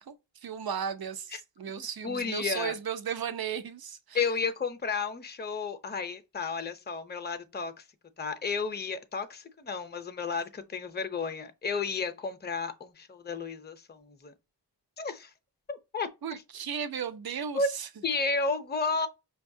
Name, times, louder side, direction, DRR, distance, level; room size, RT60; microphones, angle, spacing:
voice 1, 0.4-4.2 16.2-17.9, right 7 dB, 55° right, 0.6 m, -35 dB
voice 2, 1.8-2.7 4.1-7.7 8.2-14.3 15.0-15.3 15.7-16.1 17.5-17.7 18.0-19.1, left 4 dB, 25° left, 0.6 m, -32 dB
5.3 x 2.3 x 2.6 m
cardioid pair, 50°, 44 cm